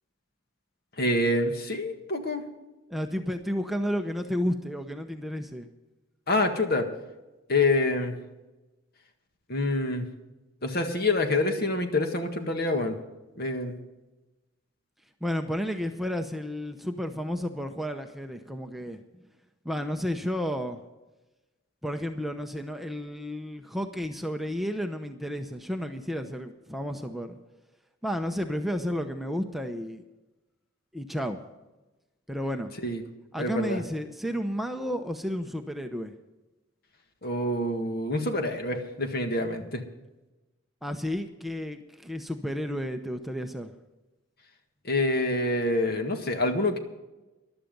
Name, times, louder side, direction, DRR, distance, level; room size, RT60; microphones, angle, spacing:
voice 1, 1.0-2.4 6.3-6.9 7.5-8.2 9.5-10.1 10.6-13.0 13.4-13.8 32.8-33.0 33.4-33.8 37.2-39.8 44.8-46.8, left 2 dB, 55° left, 5 dB, 1.8 m, -26 dB
voice 2, 2.9-5.7 15.2-19.0 19.6-20.8 21.8-27.4 28.0-30.0 30.9-31.4 32.3-32.7 33.3-36.1 40.8-43.7, equal, ahead, 5 dB, 0.7 m, -32 dB
15.0 x 11.5 x 5.3 m, 1.1 s
head